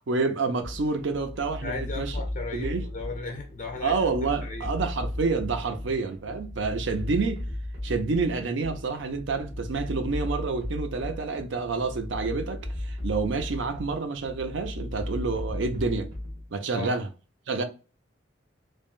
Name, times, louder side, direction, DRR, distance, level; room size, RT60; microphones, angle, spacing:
voice 1, 0.1-2.1 2.5-2.9 3.8-7.4 7.8-16.1 16.5-17.1 17.5-17.6, right 4 dB, 85° right, 0.6 m, -28 dB
sound 1, 0.6-16.5, left 1 dB, 70° right, 1.2 m, -36 dB
voice 2, 1.6-4.8 16.7-16.9, left 3 dB, 45° left, 0.4 m, -37 dB
3.4 x 2.2 x 2.4 m
head